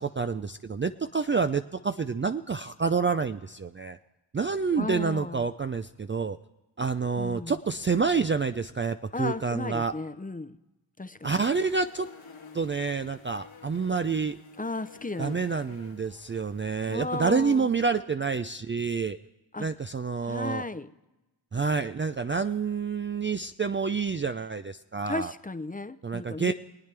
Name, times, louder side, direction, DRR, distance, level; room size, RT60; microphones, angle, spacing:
voice 1, 0.0-4.0 4.3-6.4 6.8-9.9 11.2-12.1 12.5-14.4 15.2-19.2 19.6-20.6 21.5-25.3 26.0-26.5, right 5 dB, 25° right, 9 dB, 0.4 m, -28 dB
voice 2, 4.8-5.5 7.2-7.6 9.1-10.6 11.0-11.4 14.6-15.5 16.9-17.8 19.5-19.7 20.2-20.9 25.1-26.5, left 2 dB, 15° left, 11 dB, 0.7 m, -35 dB
sound 1, 11.2-17.9, left 5 dB, 80° left, 1.9 m, -52 dB
23.0 x 8.9 x 3.3 m, 1.0 s
cardioid pair, 45°, 49 cm